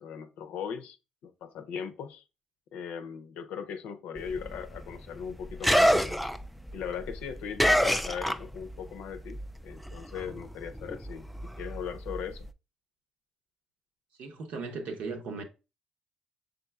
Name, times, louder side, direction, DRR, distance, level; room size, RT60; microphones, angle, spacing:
voice 1, 0.0-1.0 1.2-2.2 2.7-6.2 6.7-11.3 11.6-12.5, left 7 dB, 80° left, 0.5 m, -38 dB
sound 1, 4.2-8.9 9.1-12.5, equal, ahead, 0.3 m, -28 dB
voice 2, 14.2-15.4, right 4 dB, 75° right, 0.9 m, -37 dB
5.5 x 3.7 x 2.3 m
supercardioid pair, 65°, 2 cm